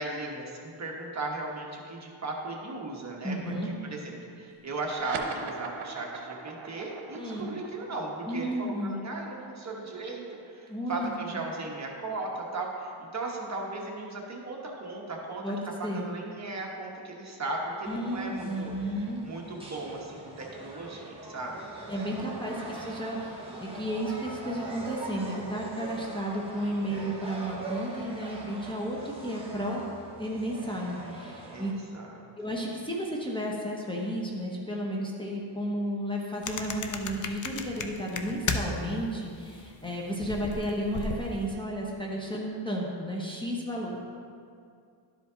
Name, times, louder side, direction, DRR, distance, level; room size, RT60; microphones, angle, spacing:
voice 1, 0.0-15.4 15.8-21.7 31.5-32.3, right 2 dB, 35° right, -1 dB, 1.2 m, -37 dB
voice 2, 3.2-3.7 7.1-7.5 8.3-9.0 10.7-11.1 15.4-16.1 17.9-19.2 21.9-29.8 30.2-31.7 32.4-44.1, equal, 10° left, -3 dB, 0.9 m, -33 dB
sound 1, 4.8-11.7, right 5 dB, 90° right, 0.9 m, -41 dB
sound 2, 17.8-31.7, right 2 dB, 10° right, 1.3 m, -42 dB
sound 3, 36.4-38.9 39.2-41.5, left 4 dB, 40° left, 0.6 m, -35 dB
12.0 x 5.0 x 3.9 m, 2.3 s
wide cardioid pair, 115°, 46 cm